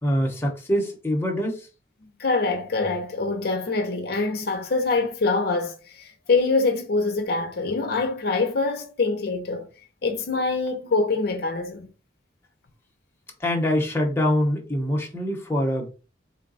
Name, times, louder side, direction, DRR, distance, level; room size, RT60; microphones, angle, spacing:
voice 1, 0.0-1.6 13.4-15.9, equal, 15° left, 0.9 m, -24 dB
voice 2, 2.0-9.7 10.0-11.9, left 3 dB, 55° left, 0.5 m, -25 dB
3.9 x 2.2 x 3.9 m
head